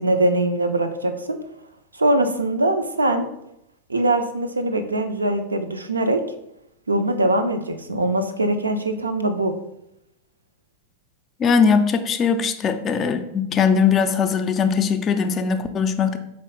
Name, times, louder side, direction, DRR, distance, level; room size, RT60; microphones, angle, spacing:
voice 1, 0.0-1.4 2.0-3.3 3.9-6.2 6.9-9.5, right 1 dB, 80° right, 7 dB, 0.3 m, -22 dB
voice 2, 11.4-16.2, left 6 dB, 25° left, 8 dB, 0.3 m, -20 dB
4.0 x 2.9 x 3.1 m, 0.82 s
figure-of-eight pair, 90°, 0 cm